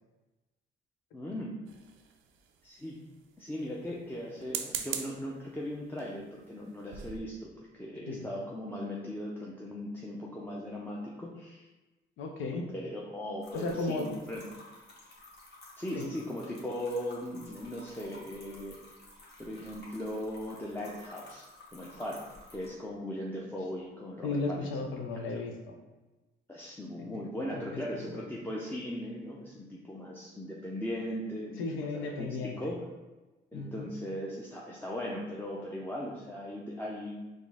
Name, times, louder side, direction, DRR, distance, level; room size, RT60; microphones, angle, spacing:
voice 1, 1.1-1.6 2.6-3.0 3.4-7.5 7.8-11.7 12.7-14.4 15.8-18.8 19.4-21.5 21.7-22.2 22.5-24.8 25.3-25.4 26.5-32.3 32.6-32.8 33.5-37.3, left 1 dB, 10° left, -5 dB, 0.6 m, -38 dB
sound 1, 1.7-2.5 4.3-5.3 6.0-6.2 6.6-6.7 6.9-7.2, right 8 dB, 90° right, 0.4 m, -38 dB
voice 2, 12.2-12.7 13.5-14.1 15.9-16.1 24.2-25.8 27.0-27.1 27.5-28.2 31.6-32.6 33.5-33.9, left 3 dB, 80° left, 3 dB, 0.7 m, -35 dB
sound 2, 13.4-22.7, left 2 dB, 55° left, 1.2 m, -53 dB
4.2 x 2.5 x 3.5 m, 1.1 s
cardioid pair, 90°, 20 cm